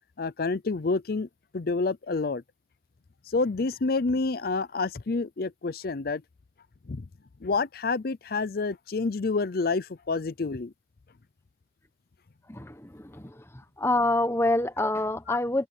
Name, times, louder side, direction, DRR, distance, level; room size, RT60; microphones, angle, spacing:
voice 1, 0.2-1.3 1.5-2.4 3.3-6.2 6.9-7.1 7.4-10.7 15.3-15.4, left 3 dB, 60° left, 0.5 m, -28 dB
voice 2, 12.5-13.4 13.8-15.7, left 2 dB, 15° left, 1.2 m, -26 dB
head